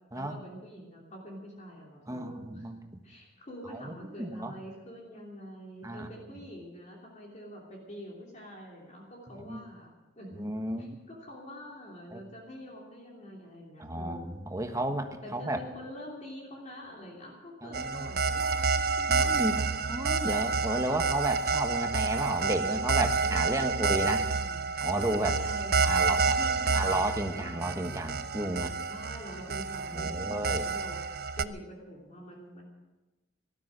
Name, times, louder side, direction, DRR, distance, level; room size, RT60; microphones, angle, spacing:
voice 1, 0.1-2.7 3.0-10.5 10.8-14.4 15.2-19.7 23.2-24.7 25.2-27.0 27.4-27.5 28.9-31.0 31.4-32.6, equal, 40° left, -2 dB, 3.1 m, -46 dB
voice 2, 2.1-3.0 3.7-3.9 4.2-4.5 5.8-6.1 9.3-9.6 10.4-10.9 12.1-12.2 13.8-15.6 17.6-18.1 19.1-19.6 19.9-24.3 24.8-25.4 25.8-26.4 26.7-28.7 29.9-30.7, right 1 dB, 20° right, 5 dB, 1.3 m, -33 dB
sound 1, 17.7-31.4, right 4 dB, 55° right, 0.5 m, -29 dB
18.0 x 12.5 x 6.3 m, 1.1 s
head